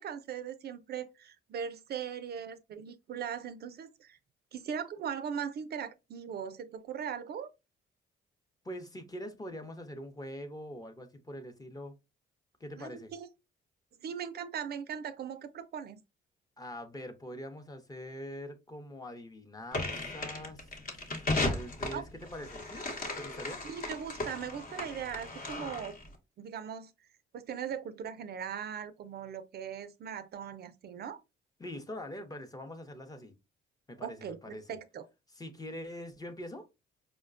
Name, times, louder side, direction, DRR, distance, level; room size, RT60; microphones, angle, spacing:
voice 1, 0.0-4.2 4.5-7.5 12.8-13.3 14.0-16.0 21.9-22.0 23.6-26.0 26.4-26.9 27.3-31.2 34.0-35.1, right 8 dB, 55° right, 0.4 m, -39 dB
voice 2, 8.6-12.0 12.6-13.1 16.6-22.8 23.2-23.6 31.6-33.3 33.9-34.8 35.3-36.7, left 1 dB, 20° left, 0.7 m, -43 dB
sound 1, 19.7-26.1, left 2 dB, 45° left, 0.9 m, -36 dB
4.7 x 2.1 x 2.4 m
cardioid pair, 90°, 20 cm